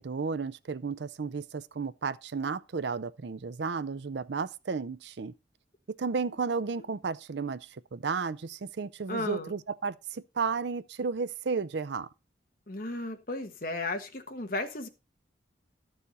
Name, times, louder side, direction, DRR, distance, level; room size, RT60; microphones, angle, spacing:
voice 1, 0.0-5.3 6.0-12.1, right 5 dB, 65° right, 0.5 m, -33 dB
voice 2, 9.1-9.5 12.7-14.9, left 2 dB, 45° left, 1.3 m, -34 dB
13.0 x 7.0 x 4.1 m
head